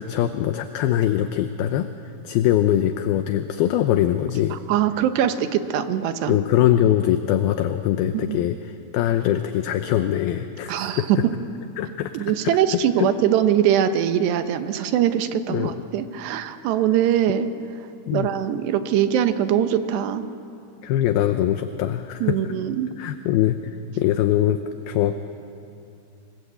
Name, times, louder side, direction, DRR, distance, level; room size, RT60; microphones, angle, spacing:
voice 1, 0.0-1.9 2.2-4.6 6.3-11.3 11.8-12.1 12.4-13.1 15.5-15.7 18.1-18.3 20.8-22.4 23.0-23.6 24.0-25.2, left 12 dB, 75° left, 8 dB, 2.4 m, -22 dB
voice 2, 4.5-6.4 8.1-8.4 10.7-11.2 12.1-17.5 18.1-20.2 22.2-22.9, right 10 dB, 80° right, 9 dB, 3.2 m, -22 dB
29.0 x 21.5 x 8.4 m, 2.7 s
omnidirectional pair, 5.0 m